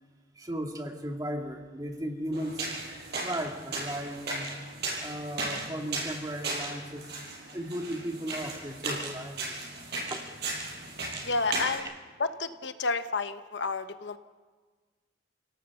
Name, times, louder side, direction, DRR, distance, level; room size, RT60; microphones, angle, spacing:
voice 1, 0.4-2.6 3.2-4.5 5.0-7.1 7.5-9.5 10.1-10.3, right 1 dB, 20° right, 3 dB, 2.0 m, -36 dB
sound 1, 2.3-11.8, right 2 dB, 60° right, 5.8 m, -36 dB
voice 2, 11.2-11.9 12.2-14.2, left 3 dB, 70° left, 10 dB, 1.0 m, -30 dB
30.0 x 17.5 x 7.0 m, 1.5 s
head